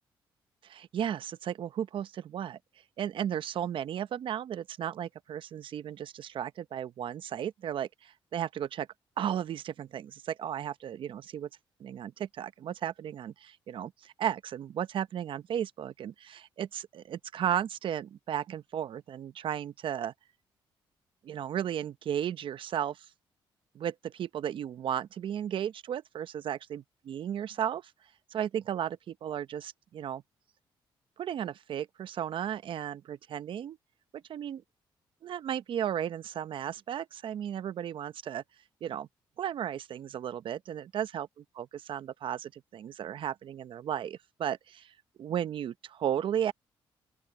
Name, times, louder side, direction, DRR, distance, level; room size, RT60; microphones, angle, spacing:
voice 1, 0.6-2.6 3.0-8.9 9.2-11.5 11.8-20.1 21.2-23.1 23.7-27.9 28.3-30.2 31.2-33.8 34.1-34.6 35.2-38.4 38.8-39.1 39.4-41.3 41.6-46.5, right 9 dB, 65° right, 0.8 m, -34 dB
open air
cardioid pair, 80°, 9 cm